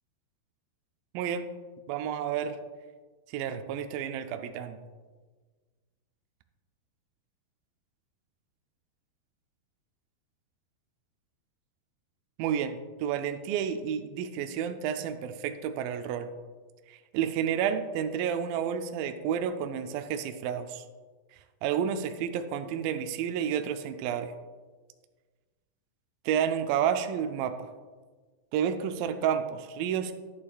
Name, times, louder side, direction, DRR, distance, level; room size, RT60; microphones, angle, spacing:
voice 1, 1.9-2.6 3.3-4.8 12.4-16.3 16.9-20.8 21.6-24.3 26.3-27.5 28.5-30.1, right 8 dB, 80° right, 7 dB, 2.1 m, -30 dB
11.0 x 8.5 x 2.3 m, 1.4 s
omnidirectional pair, 4.4 m